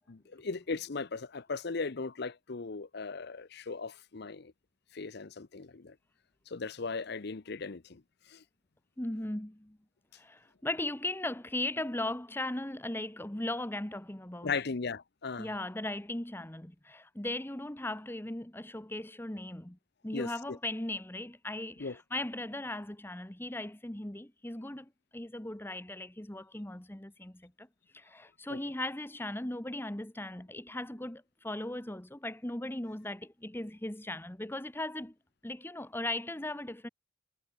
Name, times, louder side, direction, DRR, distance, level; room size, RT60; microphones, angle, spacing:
voice 1, 0.1-4.5 4.9-5.9 6.5-8.0 8.3-8.4 14.4-15.5 20.1-20.6 21.8-21.9 28.5-28.6, left 4 dB, 55° left, 0.7 m, -37 dB
voice 2, 9.0-9.8 10.1-14.5 15.4-19.8 20.0-24.8 25.1-27.7 27.9-35.1 35.4-36.9, left 1 dB, 10° left, 1.0 m, -38 dB
head